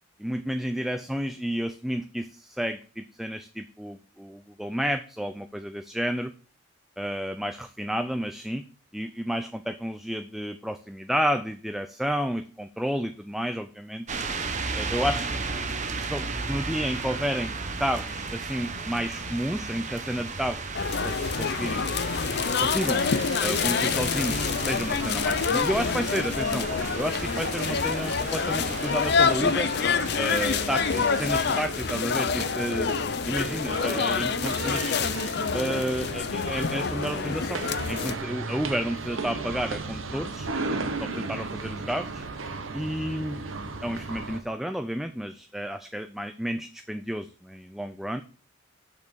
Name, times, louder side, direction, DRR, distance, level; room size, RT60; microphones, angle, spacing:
voice 1, 0.2-6.3 7.0-8.6 8.9-14.1 14.7-15.3 15.9-20.7 21.0-21.8 22.6-23.0 23.4-26.7 27.0-29.7 30.2-33.0 33.3-35.0 35.5-40.5 41.0-42.2 42.7-43.4 43.8-48.2, equal, ahead, 8 dB, 0.3 m, -31 dB
sound 1, 14.1-31.7, right 4 dB, 35° right, 0.8 m, -34 dB
sound 2, 20.7-38.2, left 5 dB, 55° left, 0.5 m, -27 dB
sound 3, 26.4-44.4, right 3 dB, 70° right, 1.0 m, -36 dB
6.6 x 5.7 x 6.1 m, 0.39 s
head